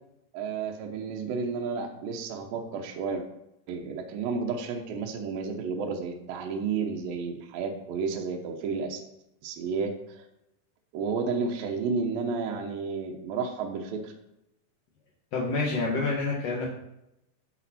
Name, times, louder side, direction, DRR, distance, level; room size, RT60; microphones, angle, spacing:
voice 1, 0.3-3.2 3.7-9.0 9.4-10.3 10.9-14.1, right 5 dB, 75° right, 2 dB, 2.3 m, -31 dB
voice 2, 15.3-16.7, left 3 dB, 65° left, -4 dB, 1.6 m, -27 dB
12.5 x 5.2 x 4.2 m, 0.84 s
omnidirectional pair, 5.0 m